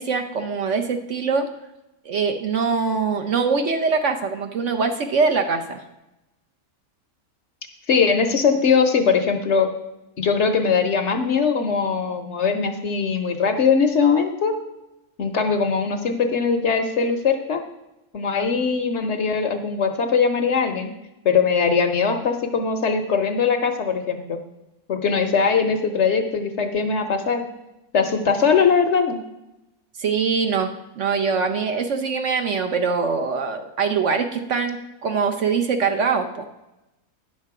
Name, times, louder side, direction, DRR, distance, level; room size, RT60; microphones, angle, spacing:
voice 1, 0.0-1.5 2.1-5.8 30.0-36.5, right 5 dB, 60° right, 6 dB, 0.9 m, -23 dB
voice 2, 7.9-9.7 10.2-14.5 15.2-17.6 18.1-20.9 21.2-24.4 24.9-27.5 27.9-29.2, left 5 dB, 55° left, 6 dB, 0.9 m, -21 dB
9.9 x 6.6 x 4.7 m, 0.97 s
omnidirectional pair, 1.6 m